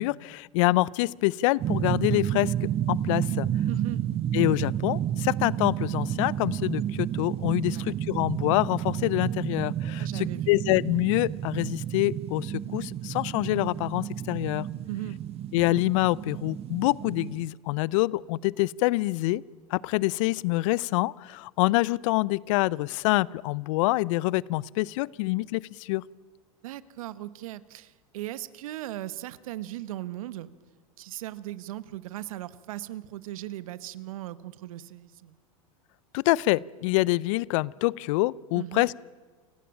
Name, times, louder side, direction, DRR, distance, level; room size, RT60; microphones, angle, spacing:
voice 1, 0.0-3.5 4.3-14.7 15.5-19.4 19.7-26.0 36.1-39.0, left 20 dB, 60° left, 25 dB, 0.6 m, -26 dB
sound 1, 1.6-17.5, right 11 dB, 35° right, 0.8 m, -31 dB
voice 2, 3.7-4.0 7.7-7.9 10.0-10.6 14.8-15.2 26.6-30.5 31.0-35.4 38.5-38.9, right 14 dB, 75° right, 16 dB, 1.2 m, -38 dB
28.5 x 16.5 x 8.8 m, 1.4 s
hypercardioid pair, 100°, 18 cm